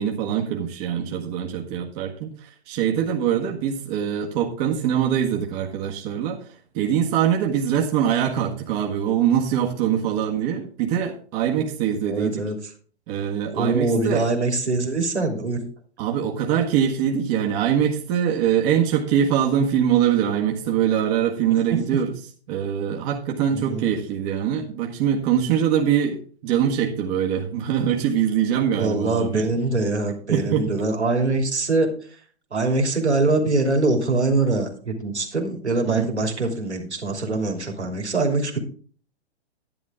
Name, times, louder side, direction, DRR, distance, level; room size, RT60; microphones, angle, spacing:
voice 1, 0.0-6.5 6.7-12.5 13.1-14.3 16.0-22.1 22.5-29.4 30.3-30.7 35.9-36.0, right 9 dB, 35° right, 1 dB, 1.7 m, -23 dB
voice 2, 12.1-12.6 13.5-15.6 23.5-23.9 28.8-31.9 32.5-38.6, right 3 dB, 85° right, 2 dB, 3.1 m, -23 dB
11.0 x 10.5 x 3.6 m, 0.43 s
figure-of-eight pair, 110°, 33 cm